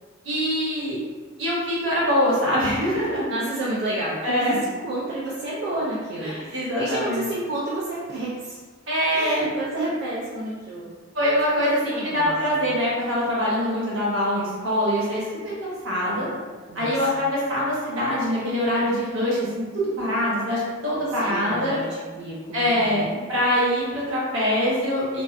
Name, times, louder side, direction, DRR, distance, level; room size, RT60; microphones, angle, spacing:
voice 1, 0.2-1.0 1.4-3.2 4.2-4.6 6.2-7.3 8.9-9.5 11.1-16.3 16.7-19.5 19.7-21.8 22.5-25.2, equal, 70° right, -7 dB, 0.9 m, -24 dB
voice 2, 3.3-8.6 9.1-10.9 11.6-12.7 16.7-17.2 21.2-23.2, right 1 dB, 50° right, -7 dB, 0.4 m, -31 dB
2.4 x 2.2 x 2.4 m, 1.4 s
head